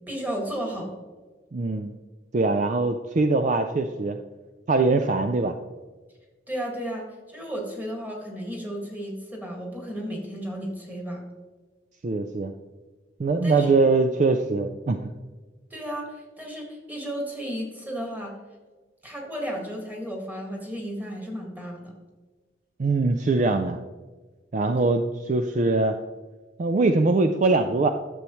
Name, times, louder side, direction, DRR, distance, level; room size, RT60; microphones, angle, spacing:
voice 1, 0.1-0.9 6.5-11.2 13.4-13.7 15.7-18.3 19.0-21.9, equal, 10° right, 0 dB, 1.8 m, -33 dB
voice 2, 1.5-1.9 2.3-4.2 4.7-5.6 12.0-12.5 13.2-15.1 22.8-23.8 24.5-26.0 26.6-27.9, right 3 dB, 40° right, 7 dB, 0.4 m, -22 dB
11.5 x 7.0 x 3.1 m, 1.3 s
head